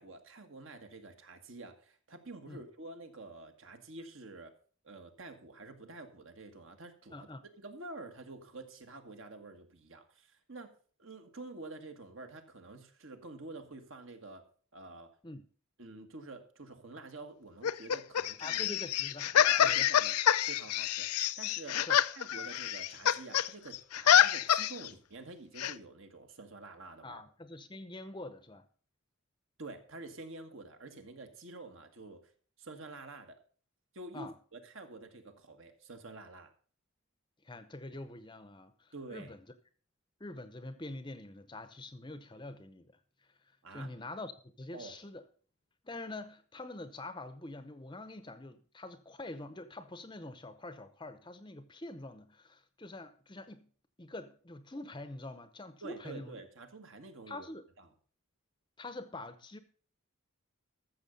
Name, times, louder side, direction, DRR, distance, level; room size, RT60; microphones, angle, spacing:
voice 1, 0.0-4.5 4.8-10.7 11.0-14.4 14.7-15.1 15.8-18.6 19.3-20.2 20.5-21.8 22.1-27.2 29.6-32.2 32.6-33.4 33.9-36.5 38.9-39.3 43.6-43.9 44.7-44.9 55.8-57.5 57.8-57.9, right 2 dB, 60° right, 1.7 m, -48 dB
voice 2, 7.1-7.4 15.2-15.4 18.4-19.3 19.6-19.9 21.9-22.0 27.0-28.6 34.1-34.3 37.4-39.5 40.2-42.9 43.7-45.2 45.8-53.7 54.0-56.4 57.3-57.6 58.8-59.6, left 2 dB, 20° left, 0.7 m, -45 dB
sound 1, 17.6-23.5 23.7-24.9 25.6-25.7, left 10 dB, 90° left, 0.5 m, -27 dB
14.0 x 6.9 x 5.3 m
head